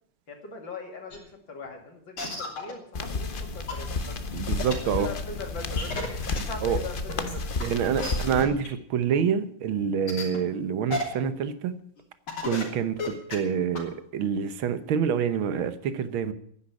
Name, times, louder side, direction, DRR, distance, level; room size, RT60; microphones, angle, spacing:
voice 1, 0.3-4.2 4.7-7.5, left 3 dB, 65° left, 3 dB, 3.2 m, -40 dB
sound 1, 1.1-1.2 1.6-1.7 2.2-2.7 3.3-3.4 3.7-3.8 4.6-4.7 5.8-6.4 7.1-7.6 8.0-8.1 8.4-8.7 9.1-9.2 10.1-10.4 10.9-11.0 11.4-11.5 12.0-12.1 12.3-12.6 12.9-13.3 13.7-13.8, left 2 dB, 80° left, 4.0 m, -31 dB
sound 2, 2.9-8.4, left 3 dB, 45° left, 0.7 m, -32 dB
voice 2, 4.3-5.1 6.6-6.8 7.6-11.7 12.4-16.3, right 7 dB, 75° right, 12 dB, 1.8 m, -27 dB
10.5 x 9.9 x 9.7 m, 0.65 s
omnidirectional pair, 2.3 m